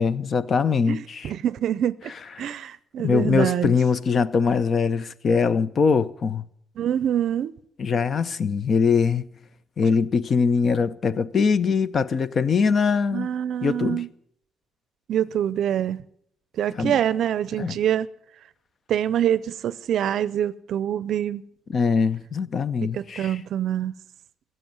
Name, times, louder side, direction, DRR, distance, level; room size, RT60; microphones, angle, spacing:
voice 1, 0.0-1.3 2.4-2.5 3.0-6.4 7.8-9.3 9.8-13.3 13.6-14.0 16.7-17.0 17.6-17.8 21.7-23.4, left 5 dB, 40° left, 0.6 m, -22 dB
voice 2, 0.9-2.1 2.4-3.7 6.8-7.5 13.1-14.1 15.1-16.0 16.6-18.1 18.9-21.4 22.9-23.9, right 10 dB, 60° right, 0.5 m, -25 dB
16.0 x 7.8 x 9.5 m
cardioid pair, 145°, 0 cm